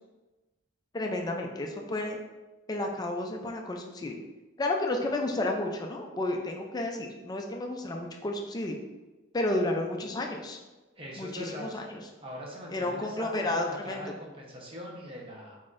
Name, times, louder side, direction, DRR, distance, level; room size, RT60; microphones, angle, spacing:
voice 1, 0.9-2.2 2.7-4.2 4.6-8.8 9.3-10.6 11.2-12.0 12.7-14.0, left 2 dB, 20° left, 2 dB, 0.4 m, -31 dB
voice 2, 11.0-11.7 12.2-15.6, equal, 30° right, -3 dB, 0.9 m, -42 dB
4.3 x 3.8 x 2.5 m, 1.2 s
head